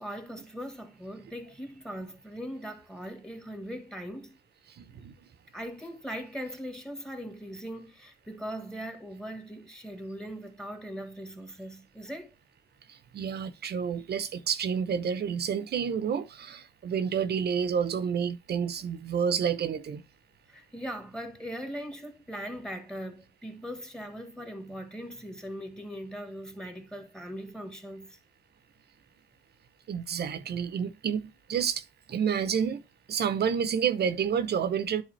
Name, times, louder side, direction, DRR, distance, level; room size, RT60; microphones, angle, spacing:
voice 1, 0.0-4.4 5.5-12.3 20.5-28.2, equal, 5° left, 1.5 m, -40 dB
voice 2, 4.8-5.1 12.9-20.0 29.9-31.8 32.1-32.8 33.1-35.0, right 7 dB, 55° right, 0.8 m, -29 dB
10.0 x 3.6 x 3.2 m
cardioid pair, 90°, 20 cm